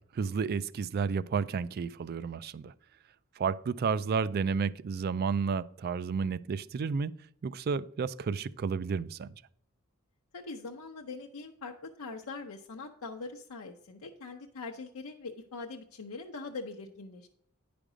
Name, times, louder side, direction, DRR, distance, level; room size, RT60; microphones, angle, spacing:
voice 1, 0.1-2.7 3.4-7.1 7.4-9.3, right 5 dB, 45° right, 0.3 m, -31 dB
voice 2, 10.3-17.3, left 3 dB, 75° left, 0.6 m, -42 dB
9.9 x 5.1 x 4.9 m
head